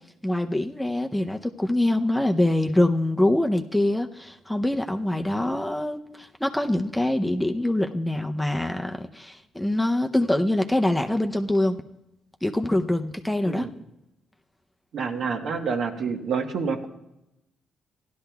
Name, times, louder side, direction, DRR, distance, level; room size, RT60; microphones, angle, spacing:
voice 1, 0.2-11.8 12.4-13.7, left 1 dB, 5° left, 4 dB, 0.6 m, -24 dB
voice 2, 14.9-16.9, right 5 dB, 65° right, 4 dB, 1.2 m, -28 dB
16.5 x 11.5 x 2.3 m, 0.90 s
cardioid pair, 90°, 0 cm